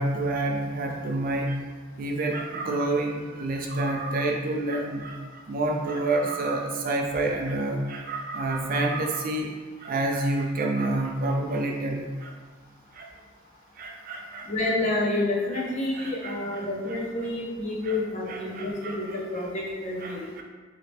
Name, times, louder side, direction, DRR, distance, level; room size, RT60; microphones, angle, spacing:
voice 1, 0.0-1.6 2.0-9.5 9.8-12.3 12.9-13.1 13.8-14.7 15.5-15.6 15.9-17.3 17.8-18.0 18.3-19.4 20.0-20.4, right 2 dB, 45° right, 1 dB, 0.4 m, -29 dB
voice 2, 14.5-20.4, left 2 dB, 35° left, -4 dB, 0.7 m, -29 dB
3.3 x 2.9 x 4.2 m, 1.4 s
head